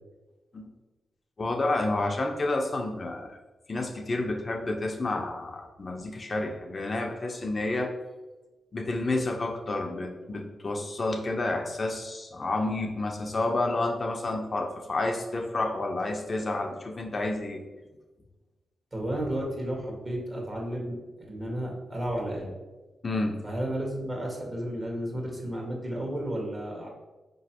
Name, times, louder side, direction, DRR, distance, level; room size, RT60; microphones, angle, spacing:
voice 1, 1.4-3.4 3.7-7.9 8.7-17.6 23.0-23.4, left 2 dB, 45° left, 2 dB, 0.6 m, -30 dB
voice 2, 18.9-21.0 21.3-22.5 23.4-26.9, right 1 dB, 30° right, -1 dB, 1.5 m, -32 dB
4.8 x 3.0 x 2.9 m, 1.2 s
supercardioid pair, 50°, 0 cm